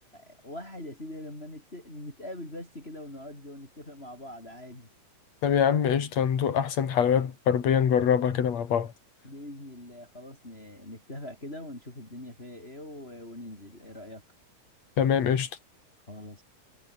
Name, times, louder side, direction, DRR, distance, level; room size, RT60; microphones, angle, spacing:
voice 1, 0.1-4.9 6.0-6.1 9.2-14.2 16.1-16.4, left 1 dB, 15° left, 7.0 m, -42 dB
voice 2, 5.4-8.9 15.0-15.5, left 8 dB, 55° left, 3.3 m, -24 dB
omnidirectional pair, 3.8 m